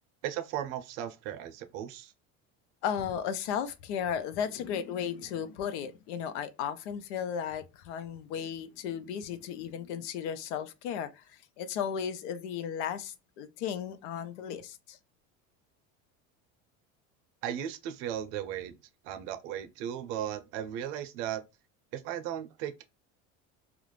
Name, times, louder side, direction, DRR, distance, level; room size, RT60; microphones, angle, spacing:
voice 1, 0.2-2.1 17.4-18.8 19.0-21.4 21.9-22.8, right 10 dB, 80° right, 0.6 m, -36 dB
voice 2, 2.8-15.0, left 8 dB, 80° left, 0.5 m, -35 dB
2.4 x 2.1 x 3.1 m
supercardioid pair, 105°, 35 cm